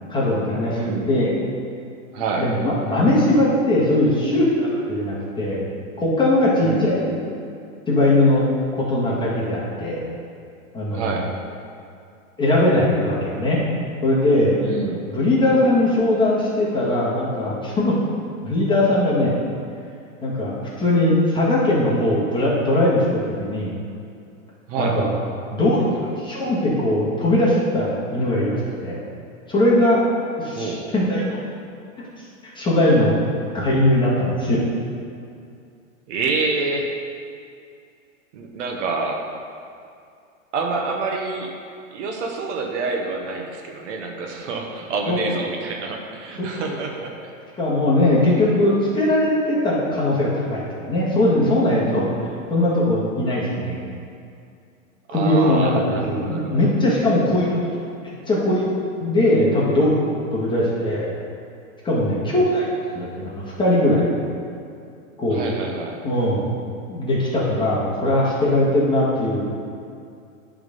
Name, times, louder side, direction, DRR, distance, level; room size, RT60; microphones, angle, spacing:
voice 1, 0.1-0.8 1.1-1.4 2.4-5.6 6.0-7.2 7.9-8.4 8.7-10.0 10.7-11.1 12.4-13.6 14.0-14.6 15.1-18.0 18.4-19.3 20.2-23.7 24.8-25.2 25.5-29.0 29.5-30.0 30.4-31.4 32.4-33.1 33.5-34.6 45.1-45.2 46.4-47.0 47.6-52.0 52.5-53.8 55.1-57.8 58.3-60.0 60.3-61.1 61.8-62.7 62.9-64.1 65.2-65.6 66.0-66.5 66.9-69.5, left 1 dB, 10° left, -7 dB, 1.7 m, -20 dB
voice 2, 0.7-1.1 2.1-2.5 6.6-6.9 10.9-11.3 14.6-15.1 24.7-25.0 30.6-30.8 36.1-36.9 38.3-39.2 40.5-41.5 41.9-47.1 55.1-56.7 60.4-60.7 65.3-66.0, right 4 dB, 60° right, 1 dB, 1.1 m, -27 dB
9.5 x 3.8 x 5.3 m, 2.4 s
hypercardioid pair, 140°, 41 cm